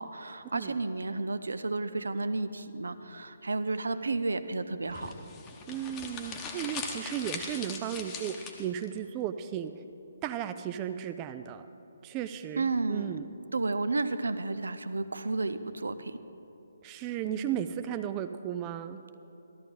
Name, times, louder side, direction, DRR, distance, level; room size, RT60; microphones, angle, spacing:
voice 1, 0.0-5.1 12.6-13.2 13.5-16.2, right 3 dB, 70° right, 12 dB, 0.5 m, -32 dB
sound 1, 4.9-8.9, left 5 dB, 20° left, 0.9 m, -40 dB
voice 2, 5.7-9.7 10.2-11.7 12.0-13.2 16.8-19.0, right 10 dB, 20° right, 9 dB, 0.3 m, -35 dB
13.0 x 13.0 x 3.8 m, 2.9 s
figure-of-eight pair, 140°, 0 cm